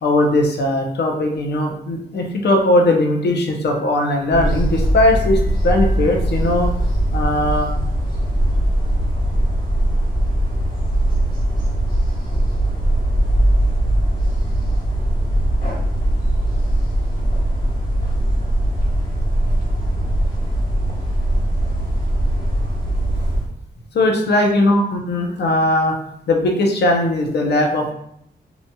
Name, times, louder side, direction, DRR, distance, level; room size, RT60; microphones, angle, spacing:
voice 1, 0.0-6.7 7.1-7.7 23.9-25.9 26.3-27.9, left 1 dB, 75° left, 2 dB, 0.6 m, -18 dB
sound 1, 4.3-23.5, right 1 dB, 50° left, 1.2 m, -20 dB
2.8 x 2.7 x 2.2 m, 0.71 s
cardioid pair, 75°, 17 cm